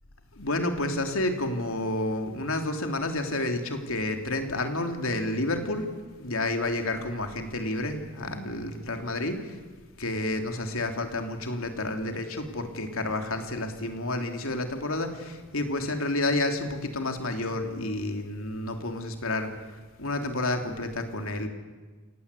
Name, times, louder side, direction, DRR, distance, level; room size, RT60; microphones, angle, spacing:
voice 1, 0.4-5.9 6.2-9.5 10.0-19.5 20.0-21.5, left 2 dB, 75° left, 5 dB, 3.0 m, -30 dB
27.5 x 18.0 x 8.3 m, 1.3 s
head